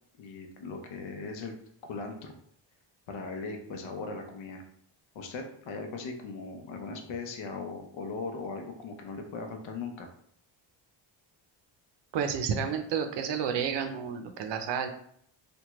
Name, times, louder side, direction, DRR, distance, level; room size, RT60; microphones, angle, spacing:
voice 1, 0.2-1.6 1.8-2.3 3.1-4.6 5.1-10.1, left 4 dB, 90° left, 4 dB, 0.8 m, -39 dB
voice 2, 12.1-14.9, right 7 dB, 65° right, 6 dB, 0.6 m, -30 dB
3.4 x 2.2 x 3.0 m, 0.65 s
cardioid pair, 135°, 46 cm